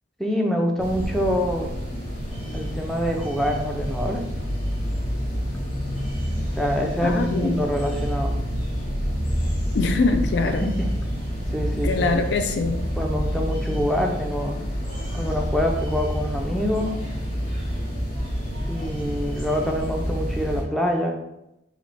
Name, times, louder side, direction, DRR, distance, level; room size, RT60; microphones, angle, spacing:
voice 1, 0.2-1.7 2.5-4.3 6.6-8.4 10.6-10.9 11.5-12.1 13.0-14.7 15.1-17.0 18.7-21.2, equal, ahead, 1 dB, 0.4 m, -25 dB
sound 1, 0.8-20.6, equal, 50° left, 1.2 m, -28 dB
voice 2, 7.0-7.6 9.7-10.6 11.8-12.8, left 3 dB, 70° left, 6 dB, 0.3 m, -23 dB
3.2 x 3.0 x 4.0 m, 0.88 s
head